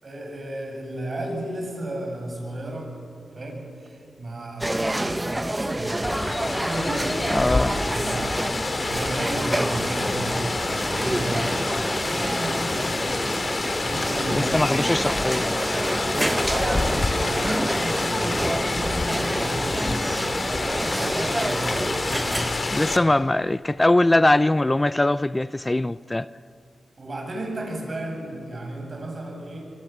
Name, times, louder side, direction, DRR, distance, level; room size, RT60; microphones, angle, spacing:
voice 1, 0.0-2.9 3.3-7.6 7.9-11.6 12.0-13.2 13.9-14.6 16.4-20.2 20.7-21.9 27.0-29.7, right 1 dB, 50° right, 2 dB, 7.7 m, -33 dB
sound 1, 4.6-22.5, right 1 dB, 15° right, 0.7 m, -28 dB
Rain, 6.0-23.0, left 3 dB, 45° left, 2.2 m, -27 dB
voice 2, 7.3-7.8 14.3-15.5 22.7-26.3, left 1 dB, 25° left, 17 dB, 0.5 m, -21 dB
24.5 x 24.0 x 7.3 m, 2.5 s
cardioid pair, 45°, 0 cm